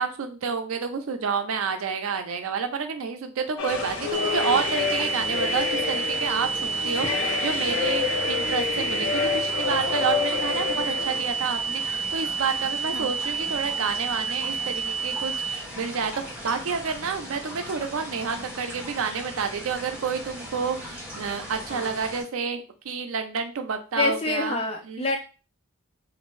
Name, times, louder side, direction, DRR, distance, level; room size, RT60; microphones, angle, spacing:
voice 1, 0.0-25.1, right 6 dB, 80° right, 7 dB, 0.5 m, -29 dB
sound 1, 3.6-11.3, left 6 dB, 75° left, 0.5 m, -28 dB
sound 2, 3.6-22.2, equal, 10° right, 1.4 m, -39 dB
sound 3, 4.1-15.6, right 6 dB, 30° right, 0.5 m, -29 dB
voice 2, 24.0-25.2, left 3 dB, 30° left, 2 dB, 0.6 m, -27 dB
2.6 x 2.6 x 3.1 m, 0.34 s
head